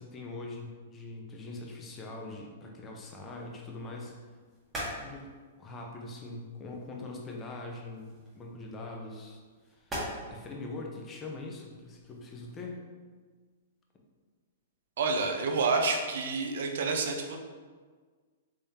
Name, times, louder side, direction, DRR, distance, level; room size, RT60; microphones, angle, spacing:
voice 1, 0.0-4.2 5.0-5.3 5.6-9.4 9.7-9.9 10.3-12.9, left 2 dB, 20° left, 0 dB, 0.6 m, -42 dB
sound 1, 3.3-12.7, equal, 15° right, 1.2 m, -45 dB
voice 2, 15.0-17.4, right 4 dB, 70° right, 3 dB, 0.6 m, -28 dB
3.5 x 3.4 x 2.7 m, 1.5 s
hypercardioid pair, 135°, 0 cm